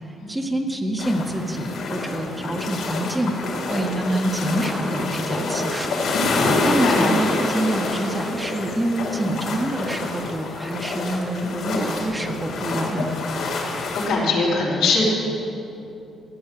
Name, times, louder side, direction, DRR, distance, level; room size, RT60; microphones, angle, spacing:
voice 1, 0.3-5.9 6.6-13.1, right 1 dB, 15° right, 2 dB, 1.5 m, -26 dB
sound 1, 1.0-14.1, left 2 dB, 70° left, 3.4 m, -27 dB
voice 2, 6.6-7.1 14.1-15.1, left 3 dB, 90° left, -5 dB, 4.2 m, -22 dB
15.0 x 9.1 x 7.7 m, 2.9 s
cardioid pair, 90°, 0 cm